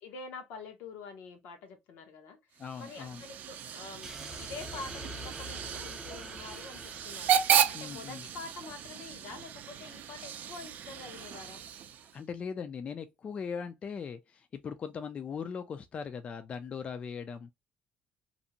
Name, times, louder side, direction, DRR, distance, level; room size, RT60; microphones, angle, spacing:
voice 1, 0.0-7.4 7.7-11.6, left 4 dB, 85° left, 0.8 m, -46 dB
voice 2, 2.6-3.2 7.7-8.2 12.1-17.5, left 6 dB, 40° left, 0.3 m, -39 dB
Hiss / Train / Alarm, 2.6-12.2, right 9 dB, 60° right, 0.4 m, -34 dB
sound 1, 4.0-8.4, right 1 dB, 15° right, 0.6 m, -45 dB
2.6 x 2.1 x 2.7 m
cardioid pair, 105°, 3 cm